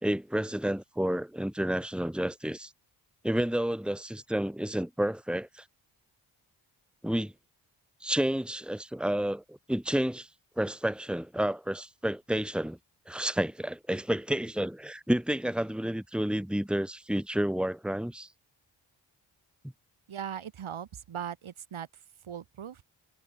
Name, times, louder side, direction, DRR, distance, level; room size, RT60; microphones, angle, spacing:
voice 1, 0.0-2.7 3.2-5.6 7.0-7.3 8.0-10.3 10.6-12.8 13.1-18.3, right 1 dB, ahead, 2.5 m, -30 dB
voice 2, 20.1-21.9 22.2-22.8, right 9 dB, 80° right, 8.0 m, -39 dB
cardioid pair, 50°, 48 cm